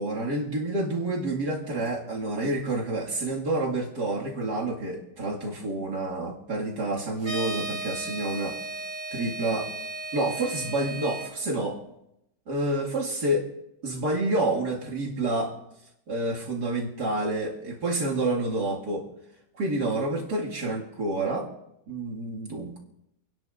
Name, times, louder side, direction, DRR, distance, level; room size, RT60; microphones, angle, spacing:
voice 1, 0.0-8.6 9.1-9.7 10.1-11.8 12.5-13.5 13.8-15.5 16.1-19.1 19.5-21.5 21.9-22.8, right 2 dB, 65° right, -2 dB, 2.7 m, -28 dB
sound 1, 7.2-11.3, right 2 dB, 25° right, 2.6 m, -35 dB
28.0 x 10.5 x 2.6 m, 0.84 s
omnidirectional pair, 1.9 m